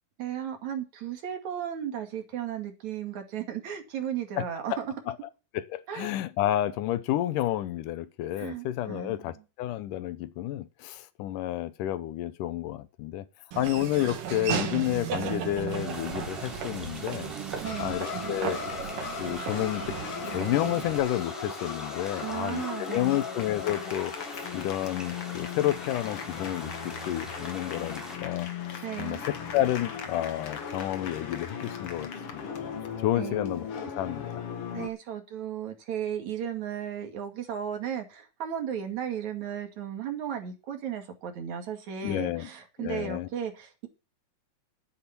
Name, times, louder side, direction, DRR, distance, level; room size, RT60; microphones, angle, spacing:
voice 1, 0.2-4.9 5.9-6.1 8.4-9.3 13.5-13.7 17.6-18.0 22.2-23.2 28.8-29.2 33.2-33.5 34.7-43.9, right 9 dB, 60° right, 3.4 m, -35 dB
voice 2, 5.5-13.2 13.6-17.3 17.8-18.6 19.2-20.0 20.2-24.1 24.5-28.5 29.0-32.5 33.0-34.3 42.0-42.5 42.8-43.3, left 13 dB, 80° left, 2.4 m, -30 dB
Laughter / Walk footsteps, 13.5-21.0, right 7 dB, 80° right, 3.5 m, -35 dB
sound 1, 15.7-28.2, equal, ahead, 3.0 m, -44 dB
sound 2, 17.6-34.9, left 7 dB, 50° left, 2.4 m, -37 dB
11.5 x 8.9 x 5.9 m
omnidirectional pair, 3.7 m